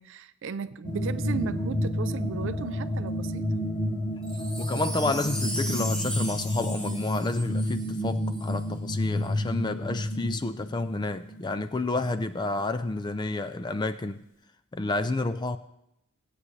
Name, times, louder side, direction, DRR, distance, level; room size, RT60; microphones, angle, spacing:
voice 1, 0.0-3.5, right 5 dB, 55° right, 0.4 m, -35 dB
sound 1, 0.8-12.5, left 1 dB, 35° left, 1.1 m, -31 dB
Wind chime, 4.2-8.6 9.2-9.3, equal, 5° left, 0.8 m, -37 dB
voice 2, 4.6-14.2 14.7-15.6, left 2 dB, 20° left, 0.4 m, -30 dB
18.0 x 8.3 x 3.2 m
head